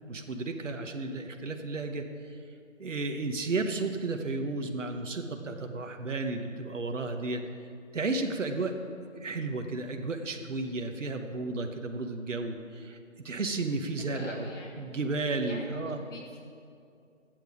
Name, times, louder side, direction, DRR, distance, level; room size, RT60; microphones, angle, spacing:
voice 1, 0.0-2.4 2.8-7.4 7.9-8.7 9.2-13.0 13.2-14.5 14.8-16.0, right 3 dB, 65° right, 5 dB, 1.1 m, -33 dB
voice 2, 14.0-14.9 15.5-16.4, left 2 dB, 65° left, -2 dB, 1.9 m, -44 dB
12.0 x 9.1 x 4.9 m, 2.5 s
figure-of-eight pair, 175°, 39 cm